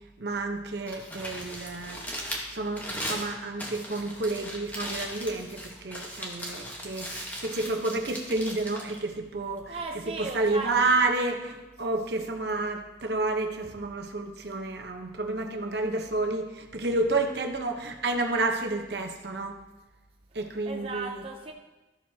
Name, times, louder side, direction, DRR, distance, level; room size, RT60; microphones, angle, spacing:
voice 1, 0.2-9.8 10.1-19.6 20.3-21.2, right 2 dB, 65° right, 3 dB, 1.0 m, -30 dB
Crumpling crinkling, 0.7-9.8, equal, 10° left, 1.2 m, -38 dB
voice 2, 9.7-10.8 20.4-21.5, right 3 dB, 30° right, 0 dB, 0.7 m, -37 dB
13.5 x 7.1 x 2.8 m, 1.1 s
head